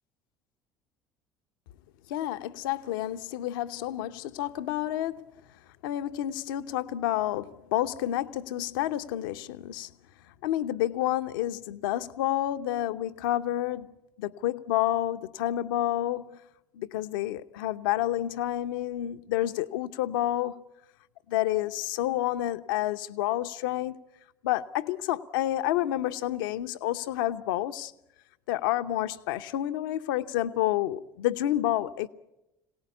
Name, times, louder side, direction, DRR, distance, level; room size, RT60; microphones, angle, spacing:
voice 1, 2.1-5.3 5.8-9.9 10.4-13.9 14.2-16.4 16.7-20.6 21.3-24.0 24.4-27.9 28.5-32.1, left 13 dB, 70° left, 0.9 m, -29 dB
25.5 x 18.0 x 8.3 m
figure-of-eight pair, 65°, 11 cm